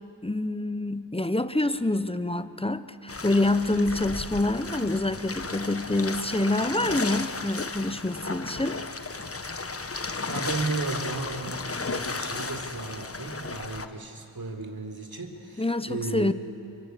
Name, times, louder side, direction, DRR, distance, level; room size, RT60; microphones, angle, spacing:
voice 1, 0.2-8.8 15.6-16.3, left 2 dB, 10° left, 12 dB, 1.2 m, -26 dB
sound 1, 3.1-13.9, left 3 dB, 30° left, 1.4 m, -34 dB
voice 2, 10.3-16.3, right 3 dB, 45° right, 5 dB, 4.2 m, -34 dB
24.5 x 24.0 x 8.5 m, 2.7 s
cardioid pair, 45°, 49 cm